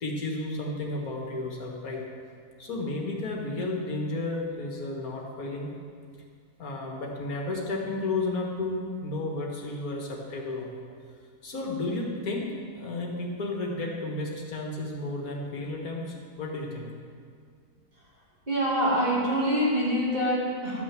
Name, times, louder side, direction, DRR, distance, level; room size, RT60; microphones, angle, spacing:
voice 1, 0.0-2.0 2.6-5.7 6.6-10.7 11.4-16.9, left 2 dB, 70° left, 0 dB, 1.9 m, -32 dB
voice 2, 18.5-20.8, equal, 30° right, -5 dB, 2.4 m, -25 dB
12.0 x 6.2 x 7.6 m, 2.1 s
omnidirectional pair, 1.6 m